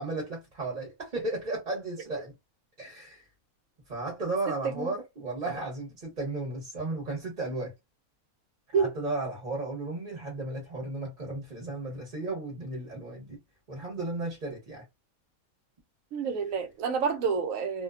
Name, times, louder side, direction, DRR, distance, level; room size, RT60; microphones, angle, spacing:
voice 1, 0.0-2.3 2.8-3.3 3.9-7.7 8.7-13.4 13.7-14.8, right 2 dB, 35° right, 0.9 m, -34 dB
voice 2, 16.1-17.8, right 6 dB, 70° right, 1.0 m, -28 dB
2.6 x 2.2 x 2.3 m
omnidirectional pair, 1.5 m